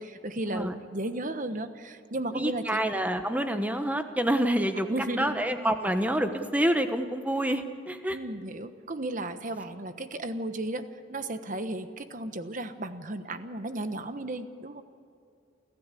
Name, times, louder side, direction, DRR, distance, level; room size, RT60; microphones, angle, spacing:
voice 1, 0.0-2.8 4.9-5.4 8.1-10.8 11.1-14.8, right 1 dB, 40° right, 9 dB, 1.2 m, -34 dB
voice 2, 2.3-8.2, right 1 dB, 10° right, 7 dB, 1.1 m, -27 dB
28.5 x 14.5 x 8.4 m, 2.5 s
head